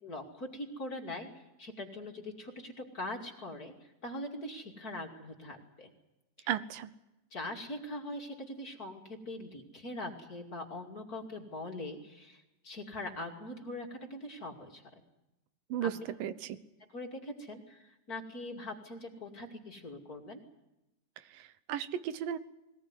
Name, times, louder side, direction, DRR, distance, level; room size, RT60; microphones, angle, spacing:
voice 1, 0.0-1.3 1.6-5.9 6.4-6.5 7.3-14.8 15.8-15.9 16.9-20.4, left 1 dB, 30° left, 2 dB, 2.6 m, -42 dB
voice 2, 6.5-6.9 15.7-15.9 16.2-16.6 21.3-22.4, right 10 dB, 90° right, 14 dB, 2.7 m, -35 dB
21.5 x 19.0 x 9.6 m, 0.95 s
omnidirectional pair, 3.8 m